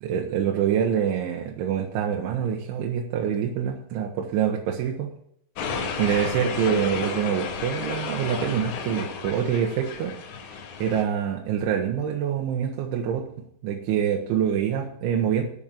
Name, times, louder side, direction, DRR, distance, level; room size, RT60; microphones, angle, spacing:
voice 1, 0.0-5.1 6.0-10.1 10.8-13.3 13.6-15.4, right 8 dB, 75° right, 0 dB, 3.4 m, -25 dB
sound 1, 5.6-11.0, left 5 dB, 75° left, 4.3 m, -32 dB
12.5 x 6.5 x 7.2 m, 0.70 s
omnidirectional pair, 5.8 m